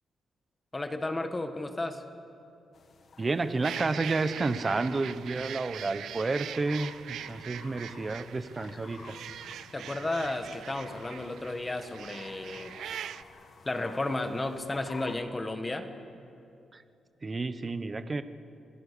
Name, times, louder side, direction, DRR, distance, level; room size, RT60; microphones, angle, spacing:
voice 1, 0.7-2.0 9.7-12.7 13.6-15.9, left 2 dB, 15° left, 7 dB, 1.5 m, -33 dB
sound 1, 2.7-15.2, left 4 dB, 50° left, 2.0 m, -52 dB
voice 2, 3.2-9.2 16.7-16.8 17.2-18.2, right 3 dB, 25° right, 11 dB, 1.0 m, -31 dB
sound 2, 3.6-13.2, right 10 dB, 85° right, 0.6 m, -42 dB
28.5 x 21.0 x 6.8 m, 2.6 s
wide cardioid pair, 140°, 0 cm